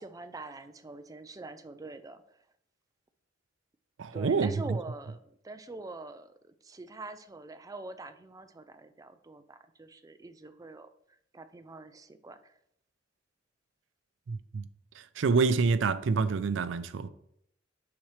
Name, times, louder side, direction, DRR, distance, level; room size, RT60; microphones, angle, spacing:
voice 1, 0.0-2.4 4.1-12.6, right 2 dB, 20° right, 0.4 m, -45 dB
voice 2, 4.0-4.5 14.3-14.6 15.0-17.1, right 4 dB, 80° right, 0.4 m, -27 dB
7.1 x 5.9 x 3.2 m
head